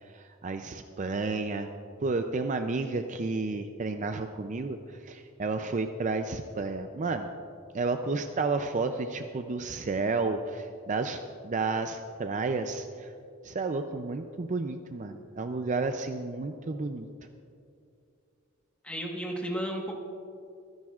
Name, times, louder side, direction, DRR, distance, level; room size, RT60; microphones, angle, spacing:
voice 1, 0.1-1.7 2.0-4.8 5.1-7.3 7.7-13.1 13.4-17.1, right 3 dB, 35° right, 7 dB, 0.4 m, -31 dB
voice 2, 18.8-20.0, right 1 dB, 5° left, 0 dB, 1.3 m, -33 dB
24.0 x 10.5 x 2.4 m, 2.5 s
head